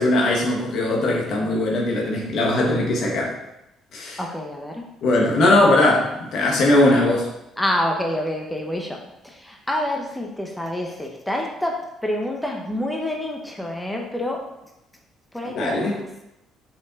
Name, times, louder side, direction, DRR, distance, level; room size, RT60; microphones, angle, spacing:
voice 1, 0.0-3.3 3.9-4.2 5.0-7.3 15.5-16.0, left 1 dB, 60° left, -1 dB, 1.7 m, -19 dB
voice 2, 4.2-4.8 7.6-14.4 15.3-16.0, left 1 dB, 5° left, 0 dB, 1.3 m, -27 dB
5.7 x 5.2 x 3.9 m, 0.87 s
hypercardioid pair, 55°, 0 cm